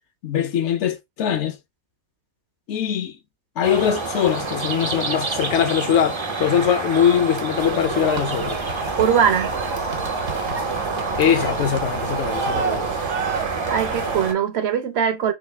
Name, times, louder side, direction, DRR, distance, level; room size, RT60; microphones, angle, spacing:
voice 1, 0.2-1.6 2.7-3.1 3.6-8.6 11.2-12.9, left 9 dB, 65° left, 0.8 m, -21 dB
sound 1, 3.6-14.3, right 3 dB, 35° right, 0.5 m, -27 dB
sound 2, 7.6-14.3, right 5 dB, 80° right, 1.4 m, -31 dB
voice 2, 9.0-9.5 13.7-15.3, right 8 dB, 60° right, 0.8 m, -20 dB
4.0 x 2.6 x 3.2 m
omnidirectional pair, 1.4 m